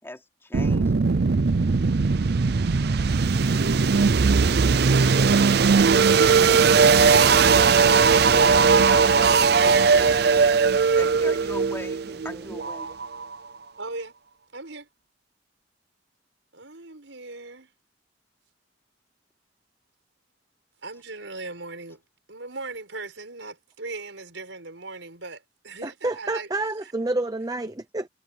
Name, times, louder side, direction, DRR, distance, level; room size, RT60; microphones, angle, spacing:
voice 1, 0.0-1.3 7.8-12.9, left 1 dB, 15° left, 3.3 m, -41 dB
sound 1, 0.5-13.4, right 5 dB, 60° right, 0.5 m, -19 dB
voice 2, 13.8-14.1 14.5-14.9 16.5-17.7 20.8-22.0 22.3-26.5 26.8-26.9, right 3 dB, 80° right, 5.7 m, -38 dB
voice 3, 25.8-28.1, right 2 dB, 20° right, 0.8 m, -29 dB
head